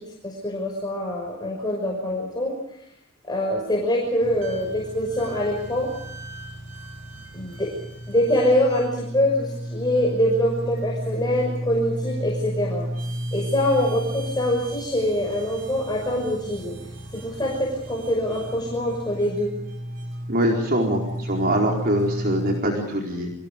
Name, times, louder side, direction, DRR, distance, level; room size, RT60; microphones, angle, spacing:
voice 1, 0.0-2.6 3.3-5.9 7.3-7.7 8.1-12.9 13.3-16.8 17.1-19.5, left 1 dB, 20° left, -1 dB, 5.9 m, -24 dB
sound 1, 4.2-22.6, equal, 65° right, 7.0 m, -33 dB
voice 2, 20.3-23.3, right 1 dB, 45° right, 0 dB, 4.6 m, -23 dB
30.0 x 26.0 x 5.3 m, 0.73 s
head